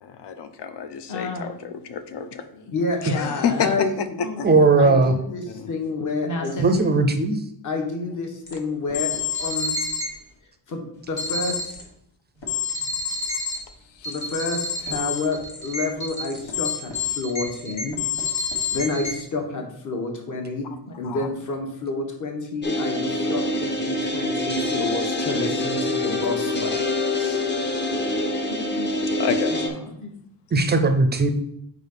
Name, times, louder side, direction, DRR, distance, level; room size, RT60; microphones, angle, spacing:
voice 1, 0.0-2.5 3.0-4.5 5.5-5.7 14.0-14.1 21.0-21.3 29.1-29.8, left 7 dB, 65° left, 10 dB, 0.7 m, -29 dB
voice 2, 1.1-1.5 2.5-6.7 7.6-9.1 9.4-9.7 10.7-11.7 14.0-18.0 18.7-26.8 27.2-27.4 28.5-28.9 29.5-30.1, left 3 dB, 45° left, 3 dB, 1.1 m, -29 dB
voice 3, 4.4-5.1 6.6-7.4 30.5-31.3, right 3 dB, 25° right, 8 dB, 0.4 m, -18 dB
sound 1, 8.5-8.6 8.9-10.1 11.2-11.8 12.4-13.6 14.0-19.2, left 5 dB, 85° left, 1.6 m, -28 dB
sound 2, 22.6-29.7, left 1 dB, 25° left, 0.6 m, -25 dB
4.9 x 4.1 x 5.3 m, 0.74 s
wide cardioid pair, 160°, 44 cm